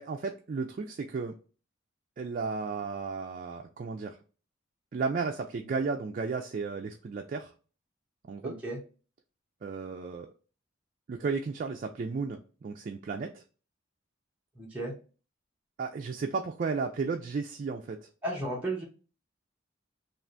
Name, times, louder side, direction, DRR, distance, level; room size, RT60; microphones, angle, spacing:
voice 1, 0.0-1.4 2.2-4.2 4.9-7.5 8.3-8.5 9.6-10.3 11.1-13.4 15.8-18.1, right 4 dB, 45° right, 3 dB, 0.3 m, -34 dB
voice 2, 8.4-8.8 14.6-14.9 18.2-18.8, right 1 dB, 5° right, -4 dB, 0.7 m, -34 dB
3.3 x 2.4 x 2.5 m, 0.36 s
head